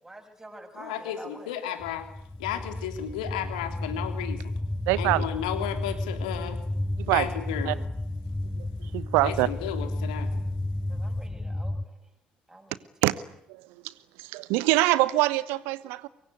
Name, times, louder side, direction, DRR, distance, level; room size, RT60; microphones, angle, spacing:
voice 1, 0.0-1.5 10.9-11.9 12.5-12.9, right 1 dB, 10° right, 4 dB, 7.3 m, -47 dB
voice 2, 0.7-2.1 2.4-4.5 4.9-6.6 7.1-7.8 9.2-10.3, left 10 dB, 70° left, 8 dB, 3.2 m, -33 dB
sound 1, 1.8-11.8, left 1 dB, 10° left, 1.1 m, -32 dB
voice 3, 4.9-5.2 7.1-7.3 7.7-7.8 8.9-9.5 13.0-13.1 13.5-13.9 14.2-16.1, right 19 dB, 60° right, 19 dB, 1.1 m, -24 dB
24.5 x 22.5 x 9.4 m, 0.71 s
figure-of-eight pair, 55°, 4 cm